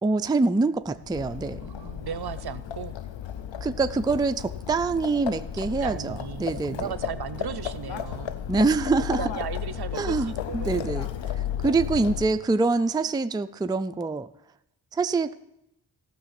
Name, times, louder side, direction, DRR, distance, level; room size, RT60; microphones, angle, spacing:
voice 1, 0.0-1.7 3.6-6.9 8.5-9.3 9.9-11.1 11.4-14.3 14.9-15.3, right 3 dB, 10° right, 10 dB, 0.4 m, -25 dB
Livestock farm animals working animals, 0.9-12.5, left 9 dB, 90° left, 0.6 m, -34 dB
voice 2, 1.6-3.0 5.6-8.3 9.2-10.8, right 8 dB, 60° right, 14 dB, 0.6 m, -36 dB
14.5 x 6.0 x 5.8 m, 0.85 s
cardioid pair, 55°, 44 cm